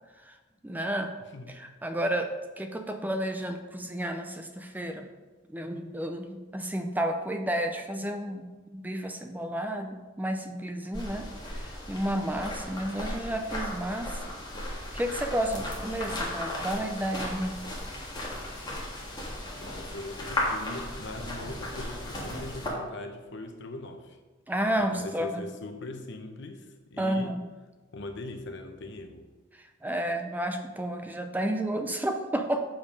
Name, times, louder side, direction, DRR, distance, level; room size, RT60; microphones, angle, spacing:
voice 1, 0.6-1.1 1.5-2.3 2.6-5.1 5.5-14.2 14.6-17.6 24.5-25.5 27.0-27.4 29.6-32.6, right 1 dB, 10° right, 5 dB, 0.5 m, -31 dB
sound 1, 10.9-22.7, left 1 dB, 20° left, 1.8 m, -36 dB
voice 2, 19.5-24.2 24.9-27.3 27.9-29.3, left 2 dB, 65° left, 6 dB, 0.9 m, -41 dB
7.2 x 5.2 x 5.3 m, 1.2 s
head